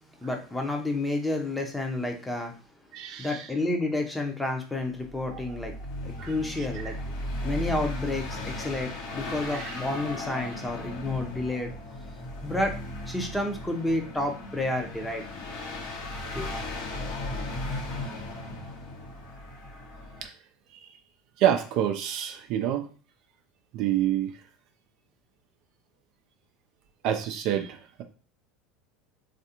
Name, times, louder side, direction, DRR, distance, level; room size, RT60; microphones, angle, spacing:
voice 1, 0.2-2.5 3.2-11.7 12.1-12.2 12.4-12.7 13.1-15.2 16.3-16.5, left 2 dB, 10° left, 3 dB, 0.7 m, -30 dB
voice 2, 2.9-3.4 6.2-6.3 6.8-6.9 9.5-9.8 20.2-20.3 21.4-22.9 23.7-24.3 27.0-28.0, right 11 dB, 55° right, 6 dB, 0.5 m, -27 dB
sound 1, 5.1-20.3, left 1 dB, 65° left, 1.0 m, -36 dB
3.3 x 2.4 x 2.9 m, 0.37 s
hypercardioid pair, 80°, 0 cm